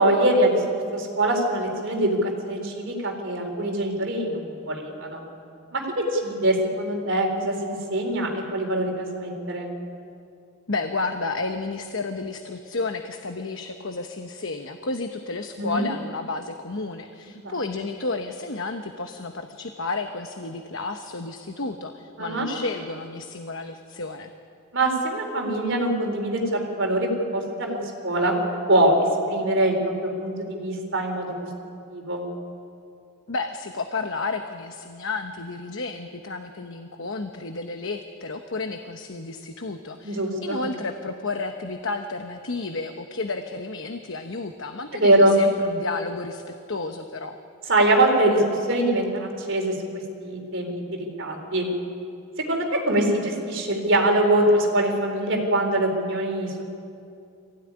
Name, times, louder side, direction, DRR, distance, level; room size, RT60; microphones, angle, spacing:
voice 1, 0.0-5.2 5.7-9.7 15.6-15.9 17.4-17.5 22.2-22.5 24.7-28.3 28.7-31.3 31.9-32.3 40.0-40.6 44.9-45.4 47.7-51.7 52.5-56.6, right 1 dB, 55° right, 2 dB, 4.1 m, -23 dB
voice 2, 10.7-24.3 33.3-47.4, left 3 dB, 60° left, 6 dB, 1.0 m, -32 dB
23.5 x 16.5 x 9.9 m, 2.5 s
head